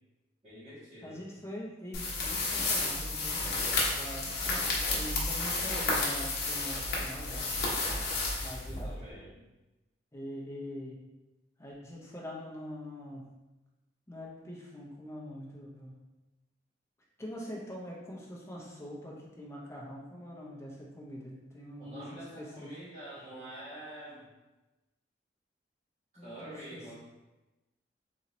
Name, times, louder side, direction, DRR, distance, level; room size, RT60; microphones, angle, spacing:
voice 1, 0.4-1.2 8.7-9.4 21.8-24.3 26.2-26.9, right 1 dB, 35° right, -11 dB, 1.3 m, -46 dB
voice 2, 1.0-3.6 3.9-7.7 8.4-8.9 10.1-11.0 11.6-13.3 14.1-16.0 17.2-22.8 26.2-26.9, equal, 15° left, -3 dB, 0.6 m, -44 dB
sound 1, 1.9-9.1, left 2 dB, 60° left, 0.8 m, -31 dB
3.9 x 2.8 x 3.0 m, 1.1 s
head